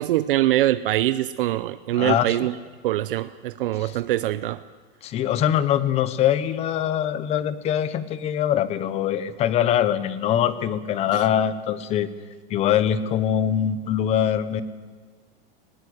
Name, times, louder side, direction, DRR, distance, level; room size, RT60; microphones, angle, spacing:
voice 1, 0.0-2.5 2.8-4.6 11.1-11.2, right 14 dB, 65° right, 14 dB, 0.7 m, -23 dB
voice 2, 1.9-2.4 3.8-4.0 5.0-12.1 12.5-14.6, left 10 dB, 20° left, 15 dB, 0.9 m, -23 dB
19.5 x 19.5 x 8.0 m, 1.5 s
supercardioid pair, 165°, 30 cm